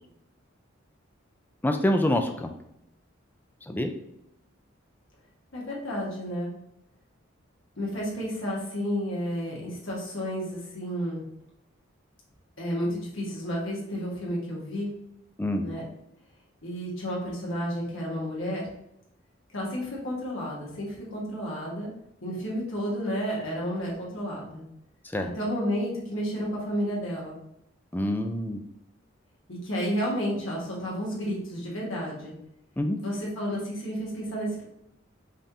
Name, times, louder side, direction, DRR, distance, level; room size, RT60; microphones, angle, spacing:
voice 1, 1.6-2.5 3.6-3.9 15.4-15.6 25.1-25.3 27.9-28.6 32.8-33.0, left 1 dB, 10° left, 5 dB, 0.3 m, -26 dB
voice 2, 5.5-6.5 7.8-11.2 12.6-14.9 15.6-15.8 16.6-18.7 19.5-21.9 22.2-24.6 25.2-27.4 29.5-32.3 32.9-34.6, equal, 80° left, -4 dB, 1.3 m, -31 dB
5.2 x 2.5 x 2.8 m, 0.80 s
head